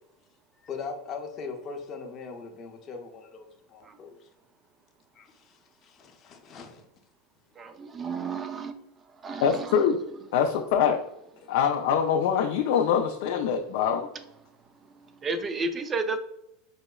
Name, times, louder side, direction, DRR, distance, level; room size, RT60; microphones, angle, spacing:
voice 1, 0.6-4.3 5.1-6.8, left 5 dB, 30° left, 3 dB, 0.6 m, -40 dB
voice 2, 7.6-8.7 9.2-9.7 15.2-16.2, right 3 dB, 20° right, 9 dB, 0.3 m, -31 dB
voice 3, 9.4-10.0 10.3-11.0 11.5-14.1, left 7 dB, 65° left, 3 dB, 0.3 m, -24 dB
5.5 x 2.0 x 2.2 m, 0.80 s
supercardioid pair, 130°, 0 cm